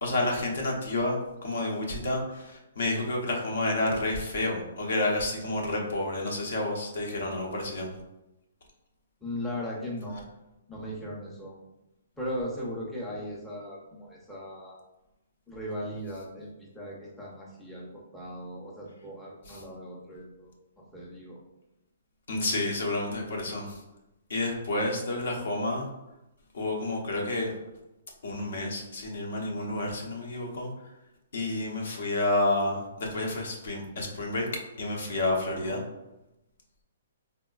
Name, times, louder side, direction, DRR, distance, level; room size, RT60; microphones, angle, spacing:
voice 1, 0.0-7.9 19.5-19.6 22.3-23.8 24.3-25.9 26.5-27.5 28.2-30.7 31.3-34.5 34.8-35.8, left 2 dB, 70° left, 0 dB, 0.7 m, -30 dB
voice 2, 9.2-10.2 10.7-11.6 12.2-14.8 15.5-20.5 20.8-21.4 35.7-35.8, equal, 5° left, -6 dB, 0.5 m, -38 dB
3.6 x 2.1 x 2.3 m, 0.94 s
hypercardioid pair, 155°, 0 cm